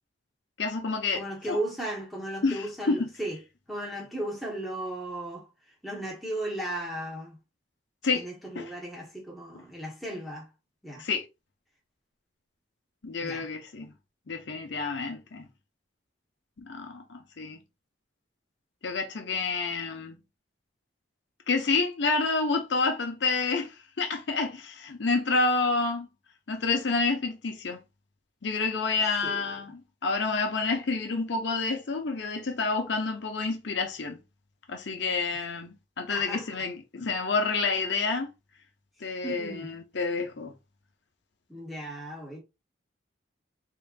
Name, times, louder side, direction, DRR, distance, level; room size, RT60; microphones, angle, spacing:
voice 1, 0.6-1.6 2.4-3.1 8.0-8.3 8.6-8.7 11.0-11.3 13.0-13.9 14.3-15.5 16.6-17.6 18.8-20.2 21.5-26.1 26.5-27.8 28.4-34.2 34.7-38.3 39.0-40.5, left 4 dB, 70° left, 0.7 m, -29 dB
voice 2, 1.1-3.4 3.7-5.5 5.8-7.4 8.1-10.5 10.8-11.0 13.2-13.5 29.2-29.5 36.1-36.5 39.2-39.7 41.5-42.4, right 1 dB, ahead, 1.2 m, -35 dB
3.8 x 3.7 x 2.5 m
head